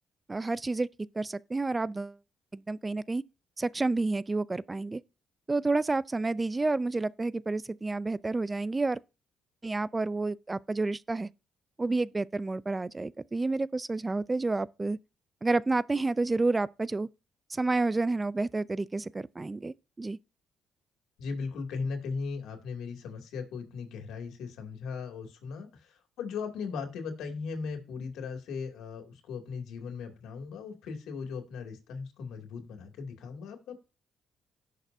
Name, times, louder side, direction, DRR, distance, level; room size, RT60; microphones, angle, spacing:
voice 1, 0.3-0.9 1.1-2.2 2.5-3.2 3.6-5.0 5.5-9.0 9.6-11.3 11.8-15.0 15.4-17.1 17.5-20.2, right 3 dB, 20° right, 0.4 m, -30 dB
voice 2, 21.2-33.7, left 5 dB, 85° left, 2.4 m, -38 dB
17.0 x 6.6 x 2.6 m
cardioid pair, 90°, 0 cm